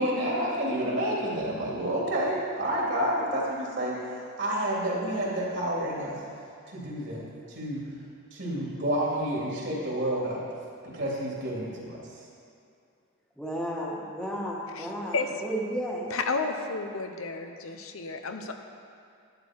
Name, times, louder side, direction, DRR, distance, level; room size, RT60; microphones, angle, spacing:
voice 1, 0.0-6.2 6.7-7.8 8.3-10.4 10.8-12.2, right 1 dB, 55° right, -5 dB, 3.2 m, -29 dB
voice 2, 13.4-16.1, equal, 5° left, -4 dB, 1.4 m, -33 dB
voice 3, 14.7-15.4 16.1-18.5, left 4 dB, 80° left, 6 dB, 0.9 m, -32 dB
11.5 x 10.5 x 4.7 m, 2.5 s
head